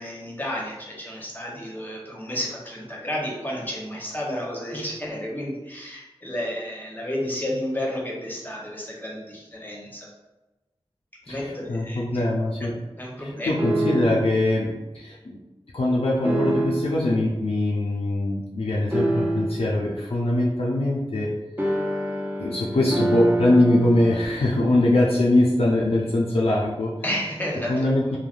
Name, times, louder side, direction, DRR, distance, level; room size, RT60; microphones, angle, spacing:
voice 1, 0.0-10.1 11.3-12.2 13.0-13.5 27.0-27.9, left 1 dB, 20° left, -3 dB, 0.8 m, -31 dB
voice 2, 11.3-12.8 13.2-15.4 15.7-21.3 22.4-27.0 27.7-28.2, left 1 dB, 70° left, -5 dB, 0.4 m, -22 dB
sound 1, 13.6-14.4 16.2-17.0 18.9-19.7 21.6-24.3, right 1 dB, 20° right, 0.6 m, -26 dB
3.2 x 2.1 x 2.4 m, 1.1 s
wide cardioid pair, 40°, 10 cm